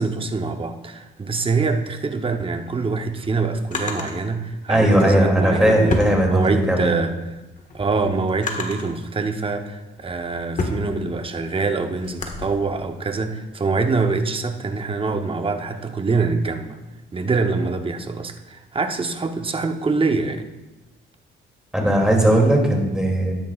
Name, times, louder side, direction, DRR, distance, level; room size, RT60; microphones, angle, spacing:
voice 1, 0.0-7.2 7.7-16.8 17.1-20.5, right 4 dB, 25° right, 7 dB, 0.8 m, -24 dB
Drawer open or close, 2.7-4.2 5.2-6.8 7.3-9.0 9.6-12.4, left 2 dB, 40° left, 1.6 m, -31 dB
voice 2, 4.7-6.9 21.7-23.3, right 1 dB, 5° right, -1 dB, 2.5 m, -18 dB
12.5 x 10.0 x 2.4 m, 1.1 s
cardioid pair, 90°, 20 cm